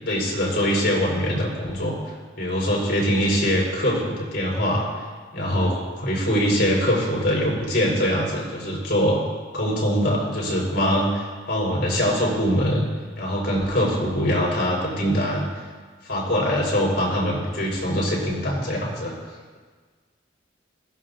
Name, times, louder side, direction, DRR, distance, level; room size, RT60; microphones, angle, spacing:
voice 1, 0.0-4.9 5.3-9.2 9.5-12.8 13.2-15.5 16.0-19.1, equal, 60° left, -3 dB, 5.4 m, -23 dB
21.0 x 16.0 x 2.8 m, 1.5 s
head